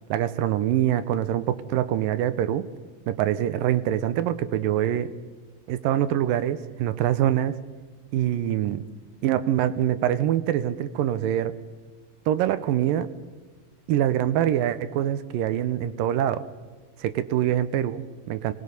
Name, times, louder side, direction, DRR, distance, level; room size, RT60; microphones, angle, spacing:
voice 1, 0.1-2.7 3.1-5.1 5.7-7.6 8.1-8.8 9.2-11.5 12.3-13.1 13.9-16.4 17.0-18.5, right 11 dB, 85° right, 12 dB, 2.5 m, -24 dB
25.5 x 19.5 x 5.4 m, 1.3 s
omnidirectional pair, 4.0 m